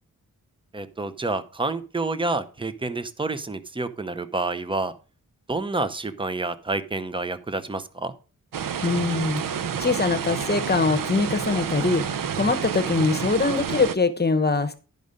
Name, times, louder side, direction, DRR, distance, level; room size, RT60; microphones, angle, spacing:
voice 1, 0.7-4.9 5.5-8.1, right 3 dB, 15° right, 12 dB, 0.7 m, -28 dB
sound 1, 8.5-14.0, right 7 dB, 80° right, 0.6 m, -29 dB
voice 2, 8.8-12.1 12.4-14.8, left 4 dB, 30° left, 9 dB, 0.9 m, -23 dB
11.0 x 5.4 x 5.1 m, 0.35 s
wide cardioid pair, 110°, 33 cm